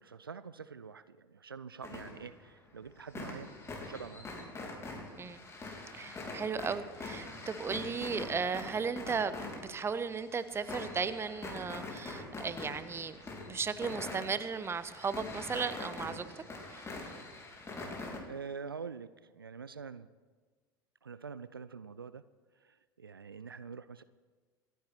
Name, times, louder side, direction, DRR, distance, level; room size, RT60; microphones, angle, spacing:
voice 1, 0.0-3.6 3.9-4.3 18.3-20.1 21.0-22.2 22.5-24.0, right 5 dB, 85° right, 15 dB, 0.4 m, -45 dB
sound 1, 1.8-2.5 2.8-18.2, left 2 dB, 25° left, 3.2 m, -44 dB
voice 2, 5.9-16.2 16.7-16.9, right 5 dB, 20° right, 13 dB, 1.0 m, -36 dB
26.5 x 9.5 x 4.5 m, 1.4 s
figure-of-eight pair, 70°, 12 cm